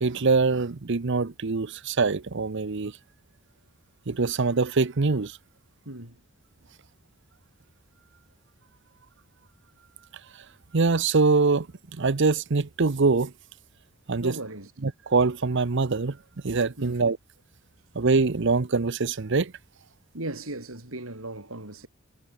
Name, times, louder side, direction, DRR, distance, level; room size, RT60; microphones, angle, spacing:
voice 1, 0.0-2.9 4.1-5.4 10.7-11.7 12.0-13.3 14.1-14.3 14.8-16.2 16.4-17.2 17.9-19.5, right 4 dB, 60° right, 0.8 m, -23 dB
voice 2, 5.9-6.2 14.2-14.7 16.8-17.0 20.1-21.9, right 2 dB, 90° right, 5.5 m, -37 dB
head